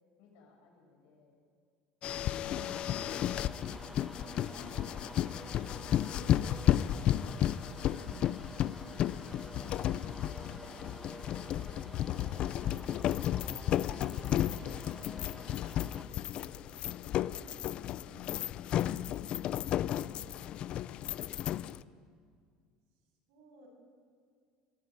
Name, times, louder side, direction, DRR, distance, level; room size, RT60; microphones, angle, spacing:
voice 1, 0.2-1.4 4.7-5.6 16.4-18.6 19.4-21.4, left 3 dB, 75° left, 0 dB, 7.5 m, -61 dB
sound 1, 2.0-21.8, left 11 dB, 45° left, 0.5 m, -33 dB
voice 2, 2.4-2.8 7.7-8.7 23.3-23.7, right 4 dB, 80° right, 0 dB, 7.1 m, -56 dB
sound 2, 2.5-16.0, right 1 dB, 5° right, 1.3 m, -50 dB
22.5 x 13.5 x 9.3 m, 2.1 s
cardioid pair, 150°, 2 cm